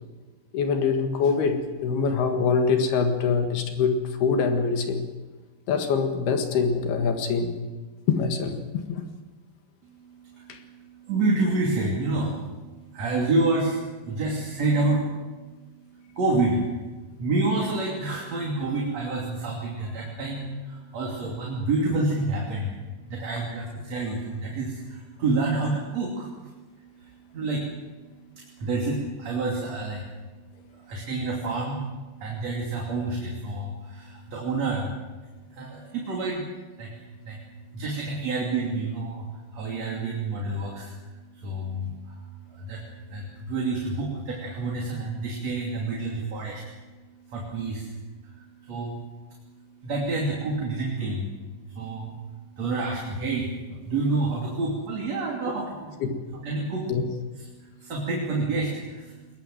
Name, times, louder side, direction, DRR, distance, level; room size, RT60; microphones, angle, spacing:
voice 1, 0.5-5.0 5.7-7.6 8.1-9.0 10.5-10.6 56.0-56.2 56.9-57.0, left 5 dB, 65° left, 5 dB, 3.5 m, -24 dB
voice 2, 9.8-28.0 28.3-56.0 56.3-56.9 57.3-59.2, right 2 dB, 40° right, -2 dB, 3.5 m, -29 dB
21.0 x 21.0 x 7.8 m, 1.3 s
omnidirectional pair, 5.1 m